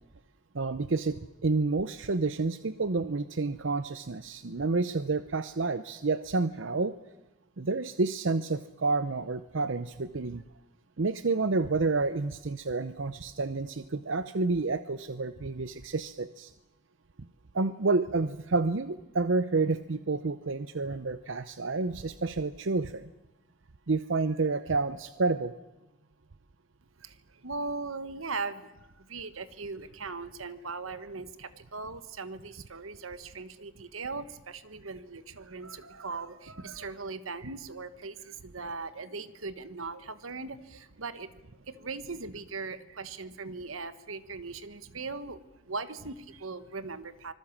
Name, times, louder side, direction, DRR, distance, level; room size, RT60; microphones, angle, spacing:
voice 1, 0.5-6.9 7.6-10.4 11.0-16.5 17.5-23.1 23.9-25.5, right 3 dB, 65° right, 12 dB, 0.7 m, -29 dB
voice 2, 27.0-47.3, right 4 dB, 85° right, 13 dB, 1.4 m, -39 dB
25.5 x 21.0 x 7.4 m, 1.0 s
head